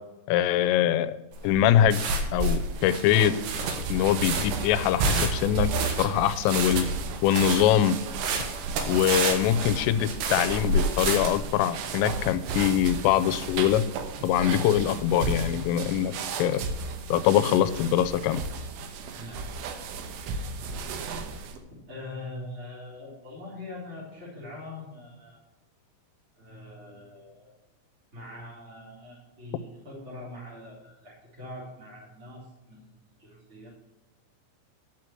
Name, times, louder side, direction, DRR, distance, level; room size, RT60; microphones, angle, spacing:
voice 1, 0.3-1.1 1.4-2.0 2.3-3.4 3.9-5.7 6.0-6.9 7.2-8.0 8.9-13.9 14.2-16.6 17.1-18.4, left 10 dB, 85° left, 13 dB, 3.2 m, -23 dB
sound 1, 1.3-11.5, right 3 dB, 65° right, 3.0 m, -30 dB
sound 2, 2.6-21.6, right 4 dB, 80° right, 3.5 m, -34 dB
voice 2, 21.9-25.4 26.4-27.5 28.1-32.9 33.2-33.7, left 1 dB, 15° right, -6 dB, 3.1 m, -43 dB
11.5 x 6.0 x 7.6 m, 1.1 s
omnidirectional pair, 5.7 m